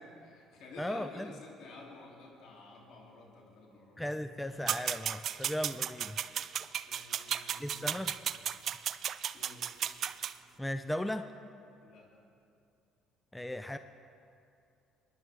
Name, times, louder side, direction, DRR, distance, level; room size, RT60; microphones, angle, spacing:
voice 1, 0.2-4.0 6.9-8.1 9.3-9.8 11.8-12.1, left 3 dB, 65° left, -2 dB, 3.2 m, -51 dB
voice 2, 0.8-1.3 4.0-6.2 7.6-8.1 10.6-11.3 13.3-13.8, left 1 dB, 10° left, 9 dB, 0.5 m, -36 dB
sound 1, 4.7-10.3, right 9 dB, 55° right, 0.4 m, -35 dB
24.0 x 10.5 x 3.6 m, 2.6 s
supercardioid pair, 65°, 0 cm